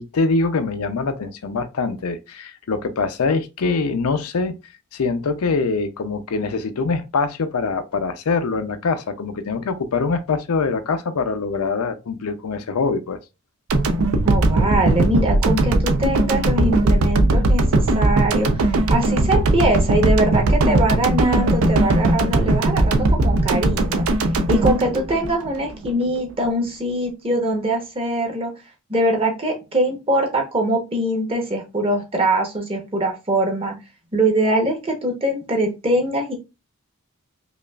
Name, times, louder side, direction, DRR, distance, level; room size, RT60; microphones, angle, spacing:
voice 1, 0.0-4.5 4.9-13.2, left 4 dB, 75° left, 0.5 m, -23 dB
sound 1, 13.7-25.9, right 2 dB, 70° right, 0.5 m, -18 dB
voice 2, 14.2-24.1 24.5-28.5 28.9-33.7 34.1-36.3, right 1 dB, 25° right, 0.8 m, -22 dB
5.1 x 2.4 x 2.3 m
head